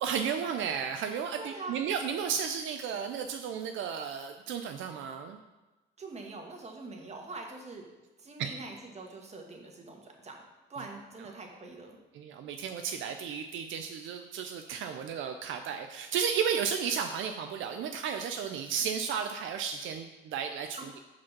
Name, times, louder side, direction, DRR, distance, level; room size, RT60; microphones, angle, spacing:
voice 1, 0.0-5.4 8.4-8.5 12.1-21.0, right 7 dB, 75° right, 5 dB, 0.4 m, -33 dB
voice 2, 1.4-1.8 6.0-7.8 8.2-10.4 10.7-12.0 20.7-20.8, right 3 dB, 35° right, 1 dB, 1.3 m, -44 dB
5.1 x 4.2 x 5.9 m, 1.1 s
cardioid pair, 90°, 20 cm